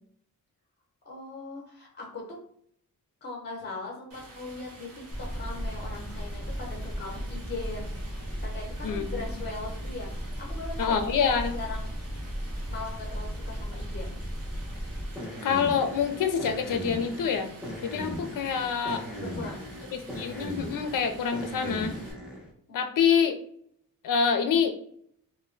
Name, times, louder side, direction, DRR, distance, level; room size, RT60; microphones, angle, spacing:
voice 1, 1.0-2.4 3.2-8.0 8.4-11.9 12.7-14.1 19.2-19.7 22.7-22.9, left 3 dB, 30° left, -2 dB, 0.8 m, -40 dB
Stream, 4.1-22.1, right 1 dB, 45° right, 1.0 m, -49 dB
sound 1, 5.1-22.5, equal, ahead, 0.6 m, -36 dB
voice 2, 8.8-9.2 10.8-11.5 15.4-17.5 17.8-19.1 19.9-21.9 22.7-23.4 24.0-24.8, left 6 dB, 65° left, 8 dB, 0.5 m, -26 dB
2.1 x 2.1 x 3.7 m, 0.64 s
wide cardioid pair, 115°, 35 cm